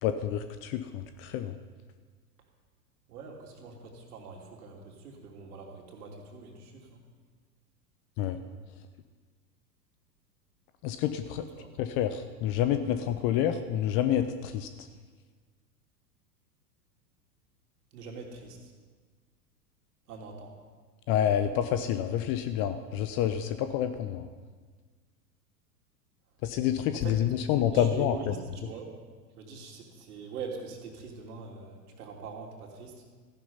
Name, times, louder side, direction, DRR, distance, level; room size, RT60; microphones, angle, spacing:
voice 1, 0.0-1.5 8.2-8.4 10.8-11.4 11.8-14.7 21.1-24.3 26.4-28.3, left 10 dB, 25° left, 10 dB, 0.5 m, -28 dB
voice 2, 3.1-7.0 11.6-11.7 17.9-18.7 20.1-20.5 26.9-27.2 27.6-28.9 29.3-33.0, right 4 dB, 65° right, 1 dB, 2.9 m, -43 dB
14.5 x 10.5 x 5.6 m, 1.5 s
figure-of-eight pair, 95°, 50 cm